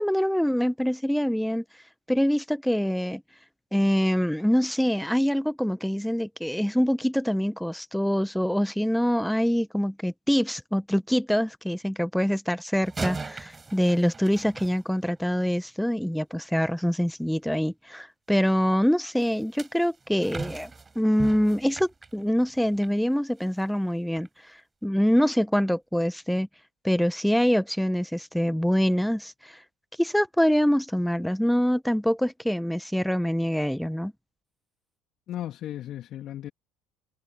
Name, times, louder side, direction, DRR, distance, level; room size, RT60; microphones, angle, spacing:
voice 1, 0.0-1.6 2.1-3.2 3.7-24.3 24.8-26.5 26.8-29.6 30.0-34.1, equal, ahead, 1.4 m, -25 dB
sound 1, 12.8-15.4 19.2-23.0 23.4-23.6 24.2-24.3, right 4 dB, 20° right, 5.5 m, -39 dB
voice 2, 35.3-36.5, left 12 dB, 50° left, 2.3 m, -35 dB
figure-of-eight pair, 60°, 0 cm